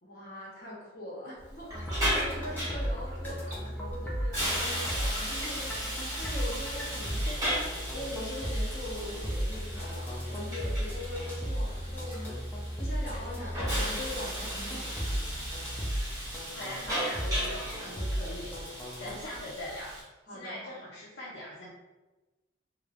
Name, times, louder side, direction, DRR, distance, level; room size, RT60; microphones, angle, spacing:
voice 1, 0.0-7.3 7.9-12.4 12.8-15.4 19.1-19.2 20.3-20.7, left 1 dB, 50° left, -5 dB, 0.9 m, -42 dB
Hiss, 1.4-20.0, equal, 20° right, 0.9 m, -36 dB
sound 1, 1.7-19.2, equal, 10° left, 0.4 m, -35 dB
voice 2, 3.3-3.7 7.3-7.4 16.5-20.0 20.3-21.8, left 1 dB, 65° left, -6 dB, 0.4 m, -42 dB
3.0 x 2.1 x 2.3 m, 1.1 s
head